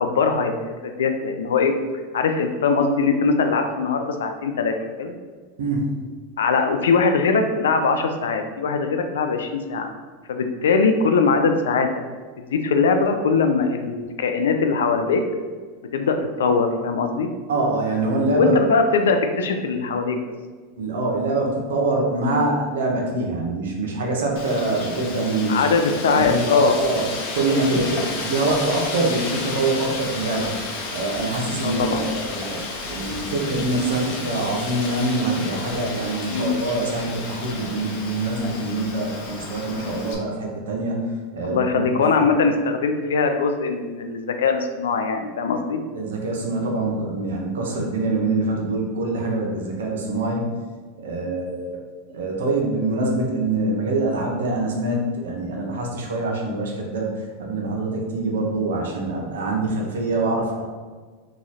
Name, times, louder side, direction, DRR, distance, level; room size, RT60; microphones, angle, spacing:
voice 1, 0.0-1.7 2.1-5.1 6.4-9.9 10.3-11.9 12.4-15.2 15.9-17.3 18.3-20.2 25.5-26.8 31.6-32.1 36.3-36.5 41.4-45.8, left 4 dB, 90° left, 6 dB, 0.4 m, -21 dB
voice 2, 5.6-5.9 17.5-18.7 20.8-27.0 27.3-30.5 30.9-32.6 32.9-41.0 41.3-42.3 45.9-50.6 51.0-51.8 52.1-60.7, right 2 dB, 85° right, -1 dB, 0.8 m, -24 dB
Wind, 24.4-40.2, left 3 dB, 60° left, 0.7 m, -32 dB
3.0 x 2.4 x 4.1 m, 1.5 s
supercardioid pair, 120°, 0 cm